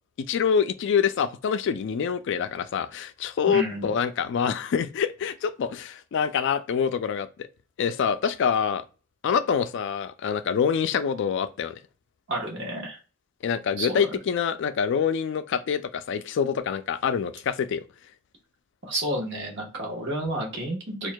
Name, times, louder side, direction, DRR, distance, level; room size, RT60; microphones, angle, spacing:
voice 1, 0.3-7.5 7.8-8.8 9.2-11.8 13.4-17.8, left 7 dB, 60° left, 0.3 m, -26 dB
voice 2, 3.5-3.9 12.3-13.0 13.8-14.1 18.8-21.1, right 1 dB, 60° right, 1.1 m, -30 dB
4.4 x 2.4 x 2.2 m
head